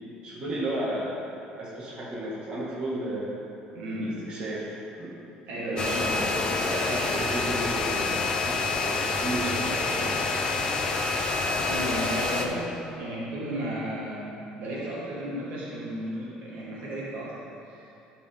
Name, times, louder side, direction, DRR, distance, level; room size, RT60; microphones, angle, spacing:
voice 1, 0.2-3.4 4.0-5.2 5.5-10.1, right 1 dB, 35° right, -7 dB, 1.9 m, -34 dB
voice 2, 3.7-4.2 5.5-6.2 9.6-10.1 11.5-14.3 14.6-17.9, right 1 dB, 60° right, -6 dB, 1.8 m, -34 dB
sound 1, 5.8-12.5, left 3 dB, 30° left, 0.6 m, -27 dB
12.5 x 5.3 x 3.7 m, 2.8 s
cardioid pair, 165°, 3 cm